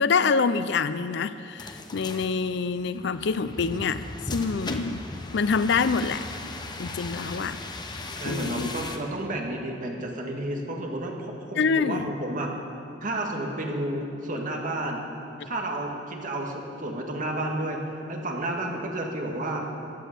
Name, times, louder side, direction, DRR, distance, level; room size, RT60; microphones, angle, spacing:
voice 1, 0.0-4.0 4.3-5.0 5.3-6.2 6.8-7.6 7.8-8.0 8.3-8.7 11.6-12.1 15.4-15.5, left 5 dB, 65° left, 14 dB, 0.5 m, -26 dB
sound 1, 1.6-9.0, left 2 dB, 25° left, 0.9 m, -37 dB
voice 2, 8.2-12.5 13.0-15.0 15.5-19.7, right 1 dB, 45° right, 1 dB, 1.8 m, -31 dB
15.5 x 10.0 x 6.7 m, 2.7 s
head